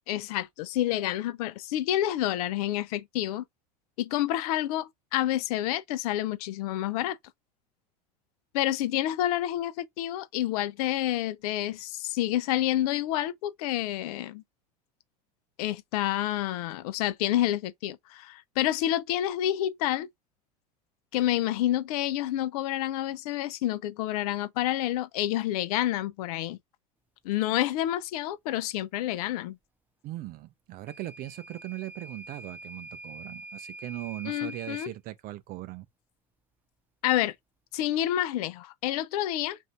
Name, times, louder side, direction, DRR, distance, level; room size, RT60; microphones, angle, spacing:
voice 1, 0.1-3.4 4.0-7.2 8.5-14.4 15.6-20.1 21.1-26.6 27.2-29.6 34.2-34.9 37.0-37.3 37.7-39.6, left 13 dB, 70° left, 0.6 m, -28 dB
voice 2, 30.0-35.9, right 16 dB, 45° right, 0.5 m, -39 dB
Microwave oven / Alarm, 30.9-35.0, right 2 dB, 10° right, 0.7 m, -44 dB
2.7 x 2.6 x 3.3 m
hypercardioid pair, 90°, 20 cm